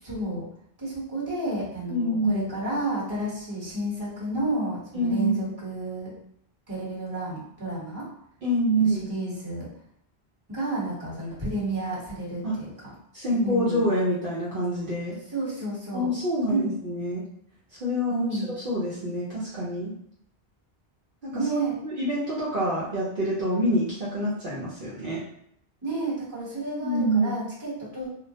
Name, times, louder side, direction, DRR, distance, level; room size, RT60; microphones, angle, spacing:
voice 1, 0.0-0.4 0.8-6.1 6.7-8.1 8.8-9.7 10.5-12.7 13.3-13.8 15.3-16.1 16.5-16.8 18.1-18.6 21.3-21.8 25.8-28.1, right 2 dB, 25° right, -7 dB, 1.0 m, -31 dB
voice 2, 1.9-2.5 4.9-5.5 8.4-9.0 12.4-12.5 13.1-15.2 15.9-17.2 17.8-18.4 18.6-19.9 21.2-25.2 26.8-27.3, equal, 65° right, -8 dB, 0.8 m, -26 dB
2.3 x 2.0 x 2.7 m, 0.70 s
omnidirectional pair, 1.0 m